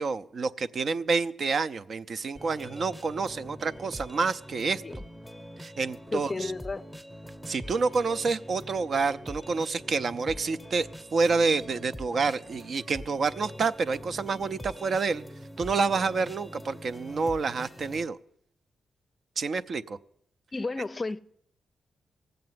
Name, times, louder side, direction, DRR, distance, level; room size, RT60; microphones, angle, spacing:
voice 1, 0.0-4.8 5.6-6.5 7.5-15.2 15.6-18.2 19.4-20.0, right 4 dB, 55° right, 0.5 m, -28 dB
sound 1, 2.4-18.1, equal, 10° right, 0.9 m, -44 dB
voice 2, 6.1-6.8 20.5-21.2, left 3 dB, 30° left, 0.5 m, -32 dB
18.0 x 7.8 x 9.4 m
cardioid pair, 95°, 0 cm